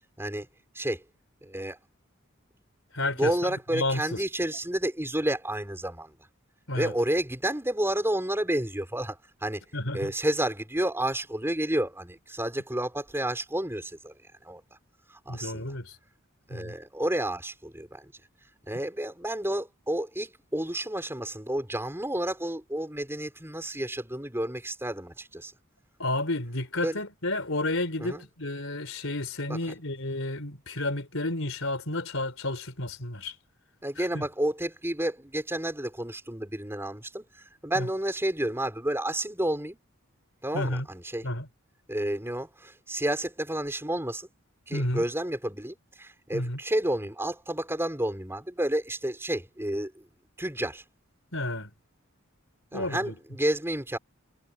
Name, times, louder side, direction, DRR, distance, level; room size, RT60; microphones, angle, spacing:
voice 1, 1.4-1.8 3.2-6.1 6.7-9.7 9.9-14.2 14.4-14.6 15.3-15.6 16.5-18.1 18.7-25.5 26.8-27.0 28.0-28.2 29.5-29.6 33.8-37.2 37.6-39.8 40.4-41.3 41.9-44.3 44.7-50.1 50.4-50.8 52.7-54.0, right 1 dB, 10° right, 5.3 m, -30 dB
voice 2, 2.9-4.2 6.7-6.9 9.7-10.1 15.3-16.0 16.5-16.7 26.0-33.3 34.0-34.2 37.7-37.9 40.5-40.9 41.2-41.5 44.7-45.0 46.3-46.6 51.3-51.7 52.7-53.1, left 2 dB, 65° left, 5.4 m, -31 dB
head